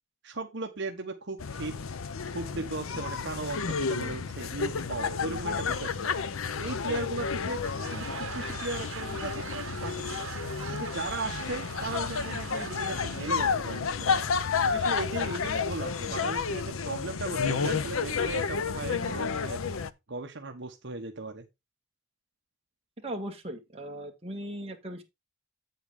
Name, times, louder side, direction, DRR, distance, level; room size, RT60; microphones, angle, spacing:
voice 1, 0.2-1.8 2.3-6.1 6.6-10.3 10.7-14.2 14.6-19.6 20.1-21.4, right 2 dB, 55° right, 1.1 m, -37 dB
sound 1, 1.4-19.9, left 5 dB, 80° left, 0.6 m, -31 dB
Laughter / Crowd, 7.5-13.7, right 6 dB, 80° right, 1.1 m, -42 dB
voice 2, 23.0-25.0, right 1 dB, 30° right, 1.7 m, -38 dB
8.2 x 8.1 x 3.6 m
head